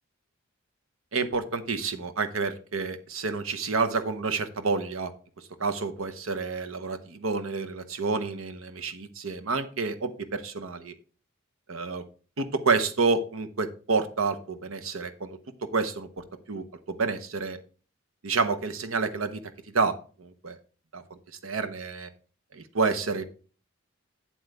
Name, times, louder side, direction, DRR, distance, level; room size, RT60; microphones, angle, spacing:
voice 1, 1.1-5.1 5.6-10.9 11.7-12.0 12.4-15.4 15.7-16.1 16.5-17.6 18.2-19.4 19.7-20.6 20.9-21.0 21.4-22.1 22.5-23.2, right 4 dB, 85° right, 10 dB, 0.9 m, -29 dB
7.7 x 7.7 x 3.4 m, 0.39 s
head